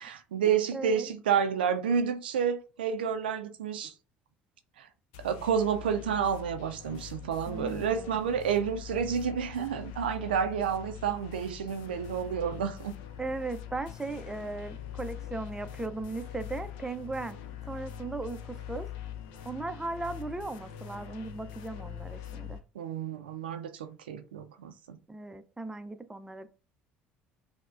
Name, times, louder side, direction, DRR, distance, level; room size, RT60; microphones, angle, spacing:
voice 1, 0.0-3.9 4.8-4.9 5.2-12.9 22.8-25.0, right 7 dB, 90° right, 0.4 m, -30 dB
voice 2, 0.7-1.1 7.5-8.3 13.2-17.4 17.6-18.9 19.4-22.6 25.1-26.5, right 3 dB, 10° right, 0.5 m, -37 dB
sound 1, 5.1-22.6, left 10 dB, 75° left, 0.5 m, -43 dB
5.8 x 2.1 x 2.5 m
hypercardioid pair, 65°, 5 cm